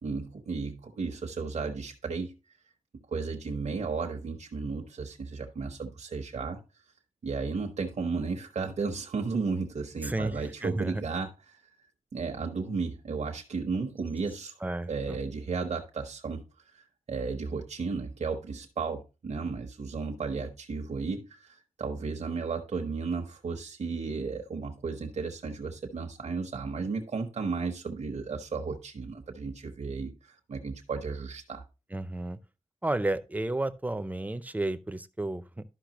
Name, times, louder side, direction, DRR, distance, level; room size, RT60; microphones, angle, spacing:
voice 1, 0.0-2.3 3.1-6.6 7.2-11.6 12.1-14.6 14.9-16.4 16.7-31.6, right 4 dB, 70° right, 1.0 m, -34 dB
voice 2, 10.0-11.0 14.6-15.2 31.9-32.4 32.8-35.6, right 2 dB, 15° right, 0.6 m, -32 dB
12.0 x 5.7 x 2.9 m
wide cardioid pair, 105°, 12 cm